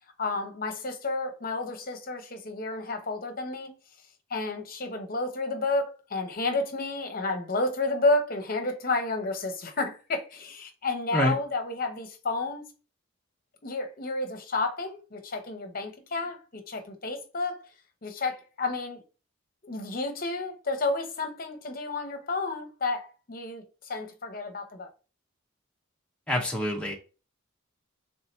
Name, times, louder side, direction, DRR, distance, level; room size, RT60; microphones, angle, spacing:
voice 1, 0.2-3.7 4.3-12.7 13.6-17.6 18.0-19.0 19.6-24.9, left 3 dB, 45° left, 0.9 m, -31 dB
voice 2, 26.3-26.9, left 1 dB, 5° left, 0.8 m, -26 dB
3.5 x 2.8 x 4.3 m
head